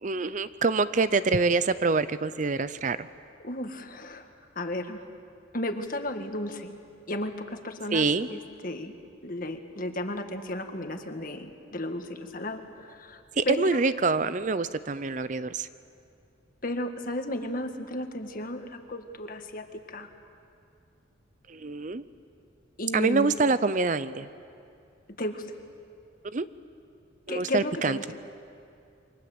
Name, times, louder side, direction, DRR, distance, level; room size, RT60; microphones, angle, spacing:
voice 1, 0.0-3.1 7.9-8.3 13.4-15.7 21.5-22.0 22.9-24.3 26.2-26.5 27.3-28.0, right 4 dB, 40° right, 14 dB, 0.5 m, -26 dB
voice 2, 3.4-5.0 5.5-6.7 7.1-8.9 9.2-13.8 16.6-20.1 22.8-23.3 25.1-25.5 27.3-28.0, left 1 dB, 45° left, 6 dB, 1.7 m, -34 dB
28.5 x 24.0 x 7.9 m, 2.5 s
head